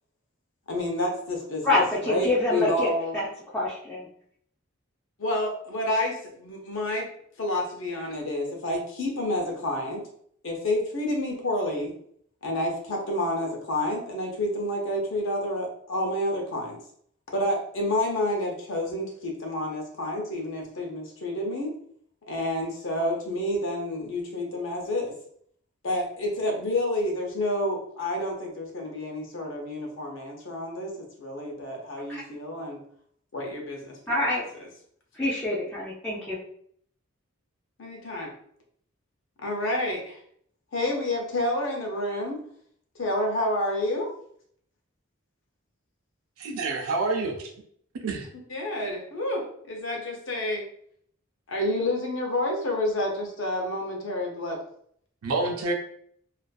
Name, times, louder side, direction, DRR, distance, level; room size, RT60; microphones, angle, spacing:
voice 1, 0.7-3.1 5.2-7.1 7.4-10.0 10.4-11.9 12.4-16.8 17.3-21.7 22.3-25.2 25.8-32.8 33.3-34.0 34.5-34.7 37.8-38.3 39.4-40.2 40.7-42.4 43.0-44.1 48.5-50.6 51.5-54.6, left 1 dB, 65° left, 1 dB, 0.6 m, -29 dB
voice 2, 1.6-3.3 3.5-4.1 32.1-32.2 34.1-34.4 35.1-36.4, left 2 dB, 10° left, -9 dB, 0.4 m, -26 dB
voice 3, 46.4-47.5 48.0-48.3 55.2-55.7, right 3 dB, 85° right, 2 dB, 0.4 m, -28 dB
2.5 x 2.4 x 2.2 m, 0.64 s
head